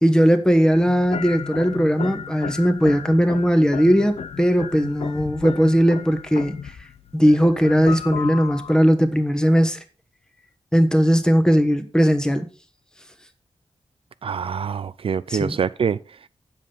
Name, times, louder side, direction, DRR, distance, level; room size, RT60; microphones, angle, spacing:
voice 1, 0.0-6.5 7.1-9.8 10.7-12.5 15.3-15.5, equal, 5° left, 1.2 m, -18 dB
sound 1, 0.7-8.8, left 7 dB, 85° left, 0.7 m, -34 dB
voice 2, 14.2-16.3, right 7 dB, 60° right, 0.4 m, -25 dB
8.5 x 7.6 x 5.4 m
wide cardioid pair, 135°, 10 cm